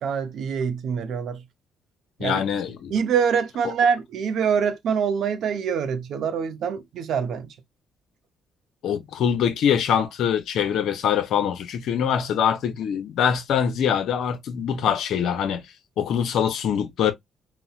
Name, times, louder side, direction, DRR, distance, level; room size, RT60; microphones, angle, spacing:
voice 1, 0.0-1.4 2.2-2.4 2.9-7.5, right 7 dB, 70° right, 0.6 m, -25 dB
voice 2, 2.2-2.9 3.6-3.7 8.8-15.6 16.0-17.1, left 8 dB, 70° left, 0.6 m, -23 dB
4.0 x 2.1 x 2.3 m
supercardioid pair, 60°, 0 cm